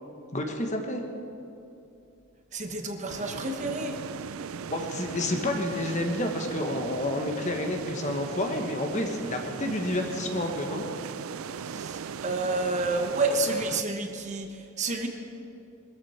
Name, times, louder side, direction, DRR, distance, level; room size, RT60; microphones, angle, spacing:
voice 1, 0.3-1.0 4.7-10.8, left 1 dB, 35° left, 3 dB, 1.4 m, -29 dB
voice 2, 2.5-4.0 11.6-15.1, right 2 dB, 35° right, 4 dB, 1.2 m, -29 dB
sound 1, 3.1-13.8, right 6 dB, 80° right, 0.5 m, -38 dB
22.5 x 14.0 x 4.4 m, 2.7 s
head